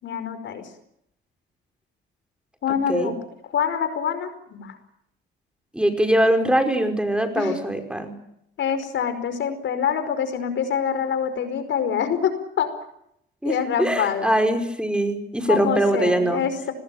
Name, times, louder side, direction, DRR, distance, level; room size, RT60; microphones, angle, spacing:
voice 1, 0.0-0.6 2.6-3.1 3.5-4.8 7.4-7.6 8.6-12.7 13.4-14.3 15.5-16.7, left 8 dB, 70° left, 10 dB, 5.1 m, -25 dB
voice 2, 5.7-8.2 13.4-16.4, right 1 dB, 5° right, 6 dB, 5.3 m, -22 dB
26.0 x 20.0 x 9.1 m, 0.76 s
cardioid pair, 90°, 20 cm